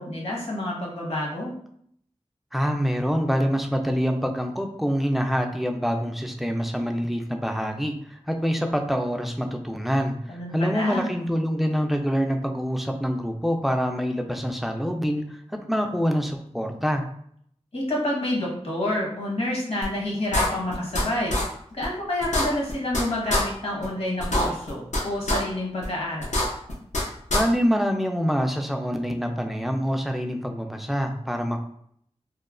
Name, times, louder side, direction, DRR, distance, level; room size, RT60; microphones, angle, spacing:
voice 1, 0.0-1.5 10.3-11.1 17.7-21.4 21.7-26.4, left 1 dB, 60° left, -3 dB, 0.9 m, -28 dB
voice 2, 2.5-15.4 15.7-17.0 27.3-31.6, equal, ahead, 4 dB, 0.3 m, -26 dB
sound 1, 19.8-19.9 20.3-21.0 21.3-21.4 21.8-21.9 22.2-23.0 23.3-23.4 23.8-23.9 24.2-25.0 25.3-25.4 25.8-25.9 26.2-27.0 27.3-27.4, left 1 dB, 90° left, 0.6 m, -23 dB
3.0 x 2.1 x 2.4 m, 0.66 s
wide cardioid pair, 75°, 12 cm